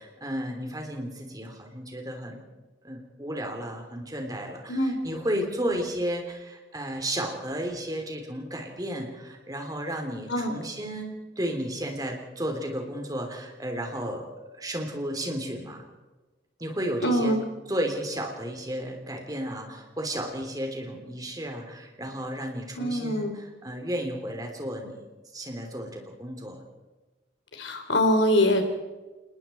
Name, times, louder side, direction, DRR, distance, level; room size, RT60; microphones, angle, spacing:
voice 1, 0.0-2.4 2.8-14.3 14.5-15.8 16.6-17.3 17.7-25.0 25.3-26.6, right 1 dB, 20° right, 3 dB, 3.4 m, -33 dB
voice 2, 17.0-17.4 22.8-23.3 27.6-28.6, left 1 dB, 90° left, 6 dB, 3.5 m, -23 dB
28.5 x 20.0 x 4.6 m, 1.2 s
head